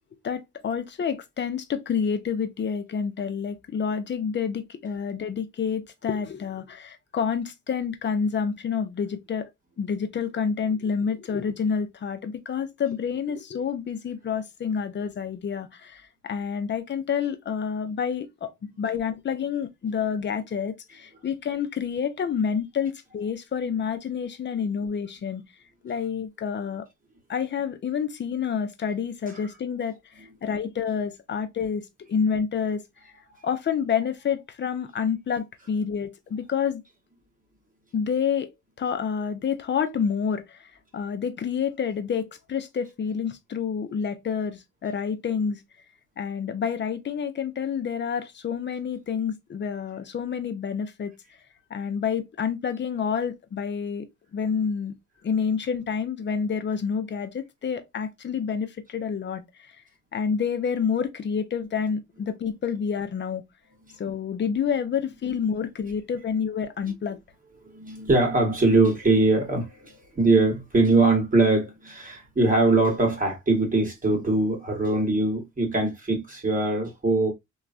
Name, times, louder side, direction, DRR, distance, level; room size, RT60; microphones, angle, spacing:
voice 1, 0.2-9.5 9.8-25.4 25.8-26.9 27.3-33.1 33.4-36.8 37.9-38.5 38.8-45.6 46.2-51.1 51.7-55.0 55.2-59.7 60.1-63.4 64.0-67.2, left 6 dB, 35° left, 0.6 m, -28 dB
voice 2, 67.6-77.3, right 3 dB, 25° right, 1.1 m, -22 dB
3.0 x 2.3 x 2.4 m
cardioid pair, 90°, 30 cm